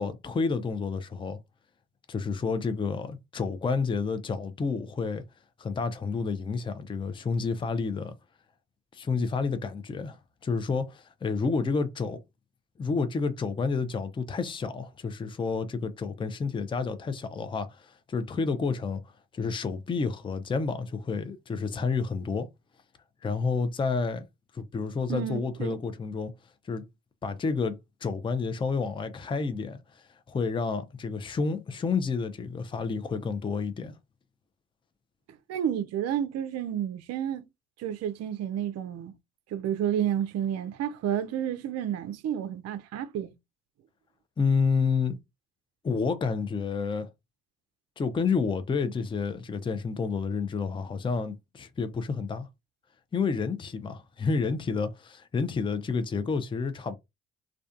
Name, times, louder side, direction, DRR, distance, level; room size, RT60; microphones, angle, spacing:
voice 1, 0.0-1.4 2.1-5.2 5.6-8.1 8.9-10.2 10.4-12.2 12.8-19.0 19.3-22.5 23.2-24.3 24.5-26.4 26.7-26.9 27.2-33.9 44.4-45.2 45.8-47.1 48.0-52.5 53.1-57.0, left 4 dB, 15° left, 0.4 m, -30 dB
voice 2, 25.1-25.8 35.5-37.4 37.8-39.1 39.5-43.3, right 10 dB, 45° right, 0.5 m, -30 dB
2.4 x 2.3 x 2.4 m
hypercardioid pair, 45°, 37 cm